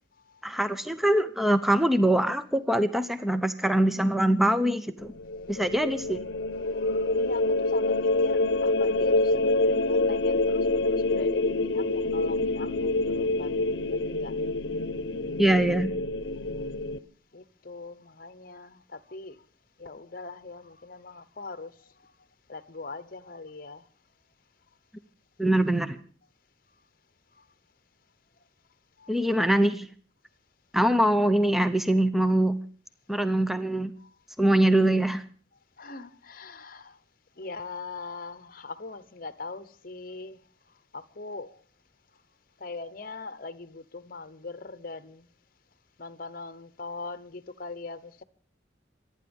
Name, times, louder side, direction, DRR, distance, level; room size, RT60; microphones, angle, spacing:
voice 1, 0.4-5.1 5.5-6.2 15.4-15.9 25.4-26.0 29.1-29.9 30.7-32.6 33.1-33.9 34.4-35.2, right 1 dB, ahead, 0.7 m, -23 dB
sound 1, 5.1-17.0, left 2 dB, 65° left, 0.9 m, -26 dB
voice 2, 6.7-13.5 13.9-14.3 17.3-19.4 19.8-22.1 22.5-23.8 27.4-27.5 29.0-29.2 33.3-33.4 34.0-34.1 35.8-37.0 37.4-40.4 40.9-41.6 42.6-45.3 46.0-48.2, left 3 dB, 50° left, 1.0 m, -41 dB
26.5 x 9.7 x 5.4 m
head